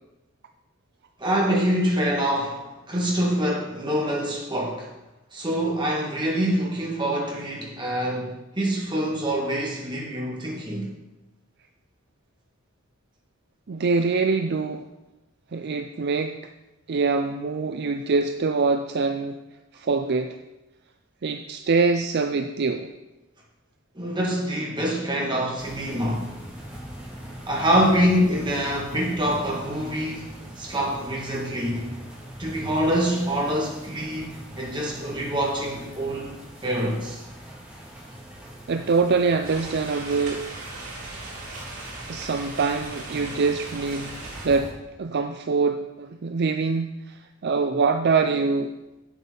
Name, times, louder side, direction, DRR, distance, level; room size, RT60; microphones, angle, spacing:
voice 1, 1.2-4.9 5.3-10.9 23.9-26.3 27.4-31.9 32.4-36.3 36.6-37.2, equal, 25° right, -3 dB, 2.3 m, -25 dB
voice 2, 13.7-14.9 15.5-16.4 16.9-19.4 19.7-20.4 21.2-22.9 38.7-40.5 42.1-44.7 45.0-48.7, right 4 dB, 55° right, 7 dB, 0.5 m, -24 dB
sound 1, 25.6-44.7, right 1 dB, 5° right, 2.5 m, -42 dB
sound 2, 39.4-44.5, right 2 dB, 85° right, 3.7 m, -38 dB
8.1 x 8.0 x 5.4 m, 1.0 s
head